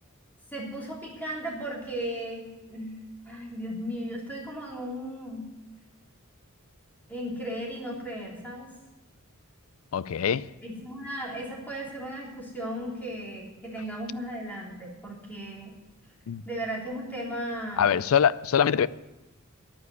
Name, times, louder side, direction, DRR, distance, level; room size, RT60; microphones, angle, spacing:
voice 1, 0.5-3.0 3.2-5.4 7.1-8.7 10.6-15.7 16.4-17.9, equal, 10° left, 3.3 m, -36 dB
voice 2, 9.9-10.5 16.3-16.4 17.8-18.9, left 8 dB, 70° left, 0.4 m, -23 dB
11.0 x 9.5 x 8.3 m
head